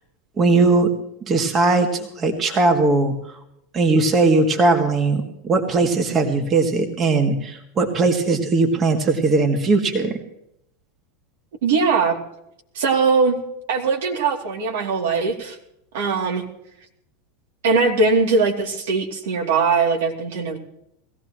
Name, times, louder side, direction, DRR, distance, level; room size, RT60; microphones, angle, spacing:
voice 1, 0.4-0.9 1.2-3.4 3.7-10.2, right 3 dB, 30° right, 5 dB, 2.0 m, -19 dB
voice 2, 11.6-12.2 12.7-13.4 13.7-15.6 15.9-16.4 17.6-20.6, right 4 dB, 75° right, 1 dB, 2.9 m, -20 dB
21.0 x 16.0 x 3.1 m, 0.77 s
hypercardioid pair, 95°, 0 cm